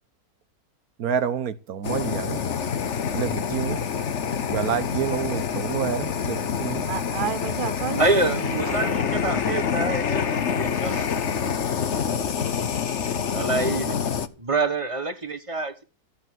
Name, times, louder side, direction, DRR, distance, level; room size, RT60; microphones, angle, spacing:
voice 1, 1.0-2.4 3.1-3.8 4.5-6.8, right 8 dB, 65° right, 1.4 m, -28 dB
Fire, 1.8-14.3, left 7 dB, 50° left, 1.2 m, -27 dB
voice 2, 6.8-9.2, right 9 dB, 45° right, 0.7 m, -32 dB
voice 3, 8.0-11.2 11.9-12.1 13.0-14.0 14.4-15.8, right 3 dB, 20° right, 1.4 m, -27 dB
15.0 x 8.2 x 7.7 m
omnidirectional pair, 1.7 m